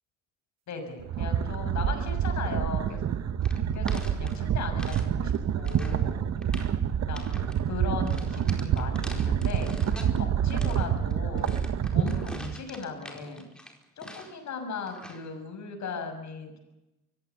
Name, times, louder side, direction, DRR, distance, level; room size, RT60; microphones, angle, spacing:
voice 1, 0.7-3.1 3.7-6.3 7.1-11.6 11.9-13.5 14.0-16.6, left 5 dB, 65° left, 5 dB, 6.7 m, -38 dB
sound 1, 1.0-12.5, right 8 dB, 60° right, 1.3 m, -27 dB
sound 2, 3.4-5.1 5.4-6.0 6.4-6.8 7.1-7.6 8.1-10.2 10.5-14.5 14.9-15.3, equal, 5° left, 4.6 m, -45 dB
24.0 x 16.0 x 8.3 m, 0.94 s
cardioid pair, 90°, 30 cm